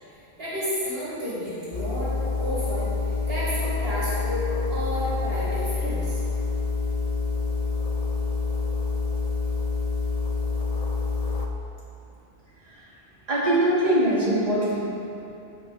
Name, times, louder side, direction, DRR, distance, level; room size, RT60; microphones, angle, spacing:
voice 1, 0.4-2.1 2.4-6.2, equal, 65° right, -9 dB, 2.2 m, -31 dB
sound 1, 1.7-11.5, left 4 dB, 40° left, 0.6 m, -27 dB
voice 2, 13.3-14.8, right 1 dB, 40° right, -10 dB, 2.3 m, -22 dB
13.5 x 5.2 x 4.0 m, 2.8 s
omnidirectional pair, 1.1 m